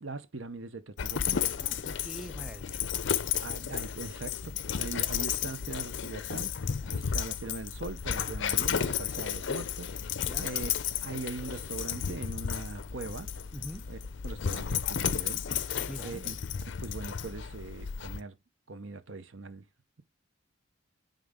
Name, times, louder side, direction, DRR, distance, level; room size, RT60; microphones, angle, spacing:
voice 1, 0.0-1.5 3.4-6.5 6.9-9.9 10.4-10.7 11.0-13.3 13.9-14.0 14.2-15.4 16.0-16.4 16.8-18.4 18.7-19.6, right 3 dB, 70° right, 0.9 m, -41 dB
Dog, 1.0-18.2, left 8 dB, 60° left, 0.5 m, -33 dB
voice 2, 1.6-2.9 6.8-7.1 10.2-10.5 13.5-13.8 15.9-16.3, equal, 5° right, 0.5 m, -44 dB
9.2 x 3.8 x 3.6 m
head